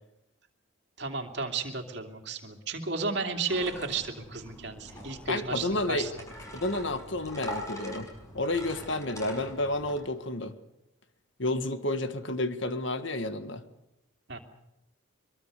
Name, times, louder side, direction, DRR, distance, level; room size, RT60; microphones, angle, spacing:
voice 1, 1.0-6.1 14.3-14.4, right 4 dB, 55° right, 4 dB, 2.8 m, -33 dB
sound 1, 3.5-10.0, equal, 15° left, 6.1 m, -43 dB
voice 2, 5.3-6.1 6.5-8.1 8.3-10.6 11.4-13.6, left 2 dB, 60° left, 9 dB, 1.8 m, -30 dB
23.5 x 23.0 x 6.8 m, 0.89 s
head